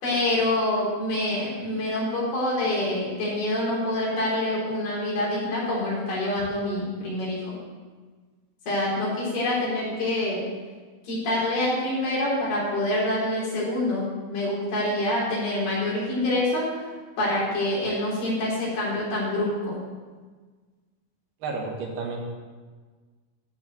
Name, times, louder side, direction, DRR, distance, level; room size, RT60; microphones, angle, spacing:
voice 1, 0.0-7.5 8.7-10.4 11.0-19.8, left 1 dB, 90° left, -6 dB, 5.7 m, -26 dB
voice 2, 21.4-22.2, right 4 dB, 85° right, -1 dB, 3.8 m, -31 dB
13.0 x 4.9 x 7.9 m, 1.4 s
omnidirectional pair, 4.4 m